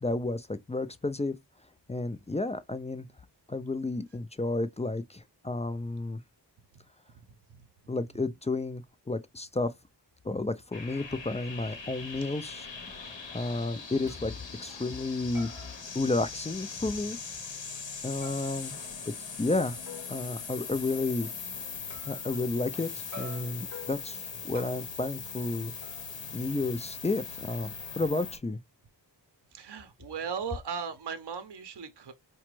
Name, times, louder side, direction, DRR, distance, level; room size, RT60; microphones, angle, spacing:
voice 1, 0.0-1.4 1.9-3.1 3.5-6.2 7.9-9.7 10.2-12.7 13.3-14.3 14.6-15.5 15.9-17.2 18.0-18.8 19.1-19.8 20.1-21.3 22.1-25.7 26.3-28.6, left 2 dB, 15° left, 0.3 m, -31 dB
sound 1, 10.7-28.4, left 5 dB, 85° left, 0.9 m, -41 dB
sound 2, 14.1-14.3 14.7-15.1 15.3-16.6 17.1-17.2 18.2-20.2 21.9-22.8 23.1-25.0 25.8-27.0, left 2 dB, 40° left, 0.9 m, -49 dB
voice 2, 29.5-32.1, right 6 dB, 65° right, 0.7 m, -37 dB
4.9 x 2.2 x 3.0 m
wide cardioid pair, 75°, 43 cm